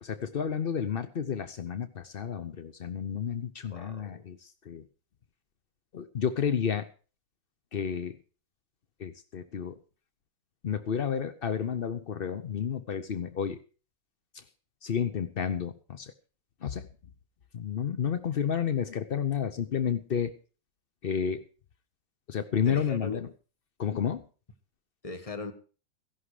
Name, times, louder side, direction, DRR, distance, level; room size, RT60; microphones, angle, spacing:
voice 1, 0.0-4.8 5.9-6.9 7.7-8.2 9.0-9.8 10.6-13.6 14.8-16.1 16.6-16.9 17.5-20.3 21.0-21.5 22.3-23.3 23.8-24.2, left 7 dB, 70° left, 11 dB, 0.5 m, -31 dB
voice 2, 3.7-4.2 22.6-23.2 25.0-25.5, left 3 dB, 20° left, 8 dB, 1.4 m, -39 dB
15.5 x 11.5 x 5.0 m, 0.37 s
omnidirectional pair, 2.2 m